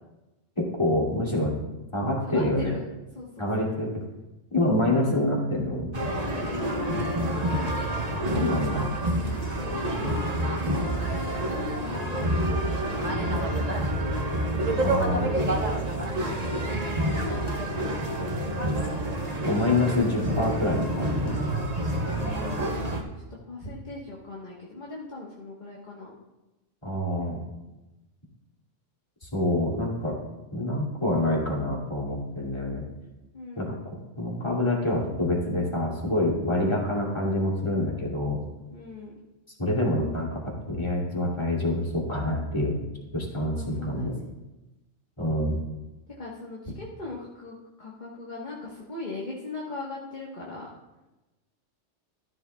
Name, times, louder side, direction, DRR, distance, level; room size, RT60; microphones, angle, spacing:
voice 1, 0.6-1.6 1.9-2.8 3.4-4.0 4.5-5.9 8.3-9.0 14.8-15.2 19.4-21.4 26.8-27.4 29.2-30.2 30.5-32.8 33.6-33.8 34.2-38.4 39.6-42.8 43.1-44.1 45.2-45.6, left 1 dB, 20° left, -3 dB, 2.5 m, -26 dB
voice 2, 2.2-2.8 3.1-3.6 4.6-4.7 6.2-7.4 9.1-10.3 10.6-11.3 11.8-14.1 15.2-16.8 17.1-18.1 22.1-23.1 23.4-26.1 33.3-33.8 38.7-39.2 43.5-44.3 46.2-50.7, left 3 dB, 40° left, -4 dB, 1.5 m, -40 dB
sound 1, 5.9-23.0, right 1 dB, 35° right, 1.2 m, -28 dB
13.5 x 11.5 x 2.3 m, 1.0 s
omnidirectional pair, 1.3 m